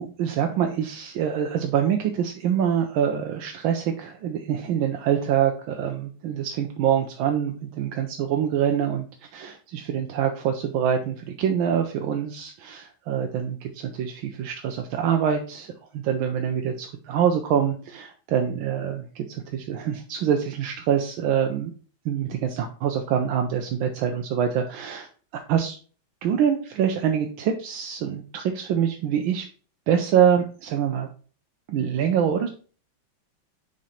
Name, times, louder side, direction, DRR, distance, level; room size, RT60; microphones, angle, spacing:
voice 1, 0.0-21.7 22.0-25.8 26.2-29.5 29.9-31.1 31.7-32.5, right 8 dB, 85° right, 4 dB, 1.4 m, -25 dB
6.3 x 3.9 x 4.3 m, 0.40 s
omnidirectional pair, 2.2 m